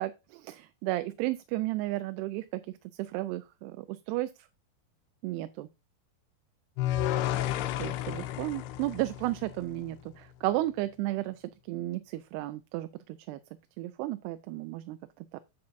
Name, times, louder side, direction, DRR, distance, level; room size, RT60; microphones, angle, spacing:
voice 1, 0.0-2.6 3.0-4.3 5.2-5.7 7.8-13.4 13.8-15.0 15.3-15.4, right 17 dB, 90° right, 2.6 m, -33 dB
sound 1, 6.8-10.0, left 13 dB, 90° left, 2.8 m, -32 dB
10.5 x 6.9 x 2.6 m
omnidirectional pair, 4.6 m